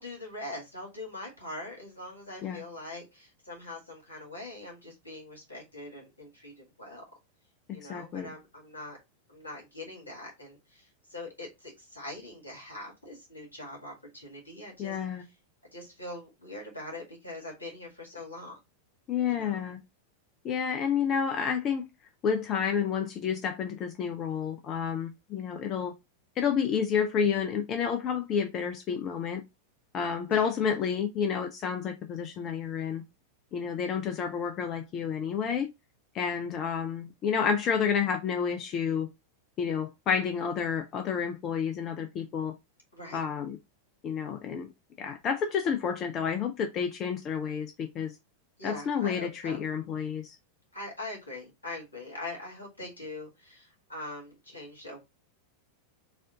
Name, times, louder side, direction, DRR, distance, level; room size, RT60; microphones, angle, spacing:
voice 1, 0.0-7.0 7.7-9.0 9.3-15.0 15.7-18.6 19.2-19.6 30.3-30.5 42.9-43.2 48.6-49.6 50.7-55.0, left 2 dB, 80° left, 2.0 m, -42 dB
voice 2, 7.7-8.3 14.8-15.2 19.1-19.8 20.4-21.9 22.2-25.9 26.4-29.4 29.9-33.0 33.5-35.7 36.1-39.1 39.6-42.5 43.1-43.6 44.0-44.7 45.0-48.1 48.6-50.4, left 7 dB, 30° left, 0.5 m, -30 dB
4.1 x 2.5 x 3.8 m
figure-of-eight pair, 90°, 0 cm